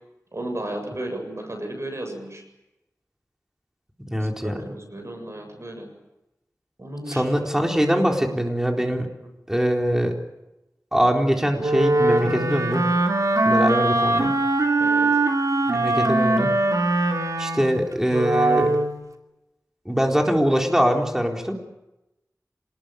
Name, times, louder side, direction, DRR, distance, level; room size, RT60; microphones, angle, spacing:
voice 1, 0.3-2.4 4.2-5.9 6.8-7.7 13.6-13.9 14.8-15.1, right 1 dB, 50° right, 4 dB, 7.7 m, -34 dB
voice 2, 4.1-4.5 7.1-9.1 9.5-10.1 10.9-12.9 13.4-14.3 15.7-16.5 17.4-18.7 19.9-21.6, equal, 10° right, 1 dB, 4.2 m, -22 dB
Wind instrument woodwind instrument, 11.6-19.0, right 2 dB, 75° right, 3.0 m, -21 dB
26.5 x 20.5 x 9.3 m, 0.97 s
wide cardioid pair, 55°, 6 cm